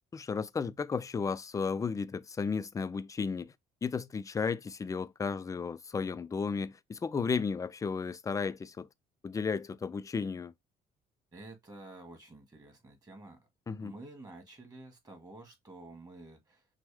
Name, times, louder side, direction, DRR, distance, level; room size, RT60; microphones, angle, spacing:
voice 1, 0.1-3.5 3.8-8.9 9.2-10.5 13.7-13.9, left 5 dB, 20° left, 0.4 m, -34 dB
voice 2, 11.3-13.5 13.8-16.7, right 2 dB, 20° right, 1.9 m, -50 dB
6.0 x 2.2 x 3.4 m
cardioid pair, 110°, 17 cm